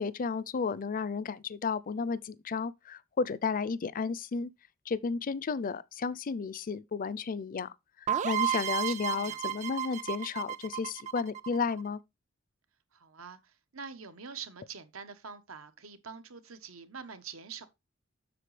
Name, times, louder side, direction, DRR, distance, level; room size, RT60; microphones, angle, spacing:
voice 1, 0.0-4.5 4.9-7.7 8.2-12.0, left 5 dB, 45° left, 0.5 m, -33 dB
sound 1, 8.1-11.8, right 9 dB, 35° right, 0.3 m, -32 dB
voice 2, 8.9-9.4 12.9-17.7, right 6 dB, 85° right, 1.2 m, -45 dB
7.7 x 6.5 x 3.3 m
head